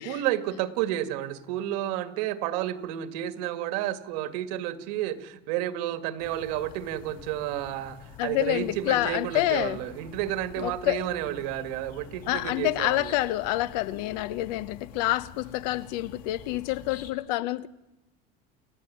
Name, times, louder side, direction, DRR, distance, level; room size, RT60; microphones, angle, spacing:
voice 1, 0.0-13.1, right 12 dB, 80° right, 1.9 m, -31 dB
sound 1, 6.2-17.1, left 7 dB, 45° left, 2.2 m, -47 dB
voice 2, 8.2-9.8 10.6-11.1 12.3-17.7, left 16 dB, 90° left, 1.0 m, -28 dB
29.5 x 15.5 x 9.4 m
cardioid pair, 180°, 20 cm